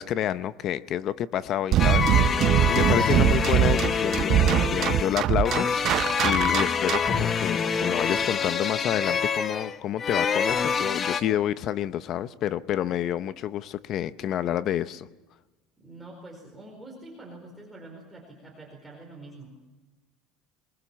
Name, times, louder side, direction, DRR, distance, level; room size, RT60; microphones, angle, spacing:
voice 1, 0.0-15.1, left 11 dB, 45° left, 15 dB, 0.8 m, -29 dB
sound 1, 1.7-7.2, right 11 dB, 45° right, 0.9 m, -22 dB
sound 2, 1.8-11.2, left 6 dB, 30° left, 1.1 m, -26 dB
voice 2, 15.8-19.5, right 2 dB, 5° right, -2 dB, 4.6 m, -45 dB
22.5 x 20.5 x 7.4 m, 1.1 s
cardioid pair, 140°, 0 cm